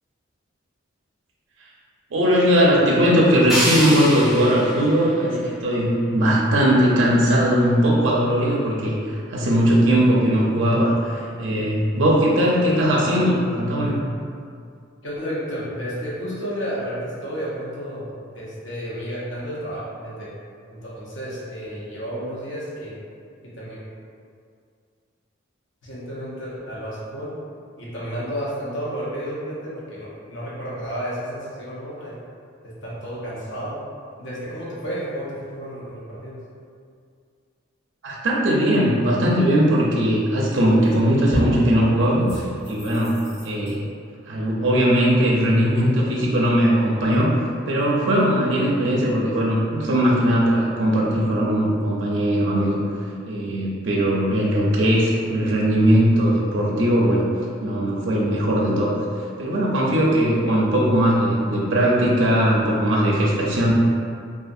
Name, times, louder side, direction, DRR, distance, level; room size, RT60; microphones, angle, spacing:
voice 1, 2.1-14.0 38.0-43.8 44.2-52.8 53.3-57.3 57.6-59.0 59.4-63.7, equal, 65° right, -4 dB, 0.4 m, -19 dB
sound 1, 3.5-6.5, equal, ahead, 0.4 m, -28 dB
voice 2, 15.0-20.3 20.7-23.0 23.4-23.8 25.8-27.3 27.8-32.2 32.6-33.7 34.2-36.4, equal, 70° left, -8 dB, 0.8 m, -32 dB
sound 2, 40.5-40.9 41.3-41.7 42.3-43.7, left 1 dB, 40° left, 1.1 m, -30 dB
2.4 x 2.4 x 2.6 m, 2.2 s
head